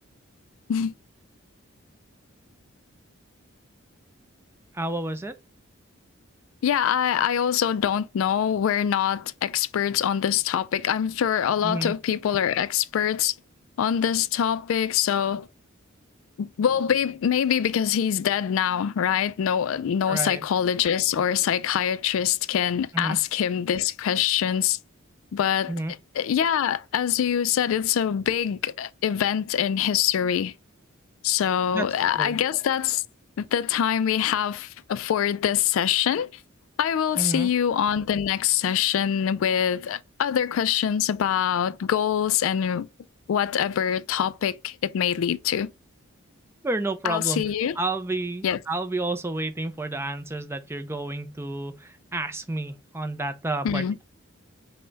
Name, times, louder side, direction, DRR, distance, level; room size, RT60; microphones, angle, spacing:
voice 1, 4.7-5.3 11.6-11.9 20.1-20.4 22.9-23.2 25.7-25.9 31.7-31.9 32.1-32.4 37.2-37.5 46.6-47.4 47.8-54.0, right 2 dB, 10° right, 0.4 m, -30 dB
voice 2, 6.6-13.3 13.8-15.5 16.4-24.8 25.3-25.7 26.1-30.5 31.2-33.0 33.4-36.3 36.8-42.9 43.3-45.7 47.0-47.8 48.4-48.6 53.6-54.0, left 9 dB, 70° left, 0.3 m, -24 dB
5.4 x 2.1 x 3.9 m
head